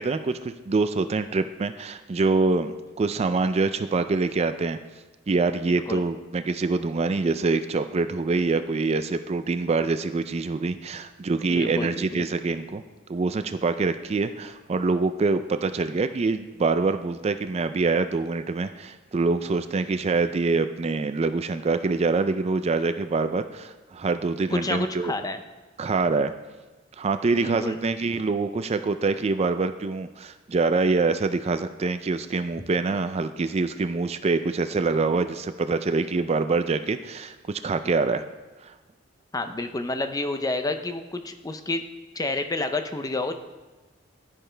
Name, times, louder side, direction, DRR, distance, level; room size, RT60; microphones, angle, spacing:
voice 1, 0.0-4.8 5.3-12.8 13.1-25.1 25.8-26.3 27.0-38.2 38.6-38.7, right 3 dB, 30° right, 10 dB, 0.4 m, -25 dB
voice 2, 5.7-6.0 11.5-12.3 24.5-25.4 27.4-27.8 39.3-41.8 42.1-43.3, left 2 dB, 20° left, 8 dB, 0.5 m, -29 dB
11.0 x 10.0 x 3.3 m, 1.2 s
head